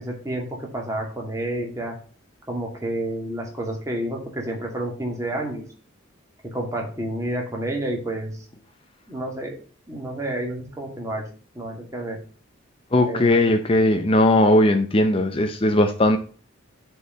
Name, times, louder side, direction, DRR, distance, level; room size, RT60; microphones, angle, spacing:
voice 1, 0.0-2.0 2.5-5.6 6.5-8.3 9.1-9.5 9.9-11.2 11.5-12.2 13.0-13.6, right 1 dB, 15° right, 0 dB, 2.3 m, -29 dB
voice 2, 12.9-16.2, left 1 dB, 25° left, 5 dB, 0.6 m, -18 dB
6.7 x 4.7 x 6.5 m, 0.41 s
head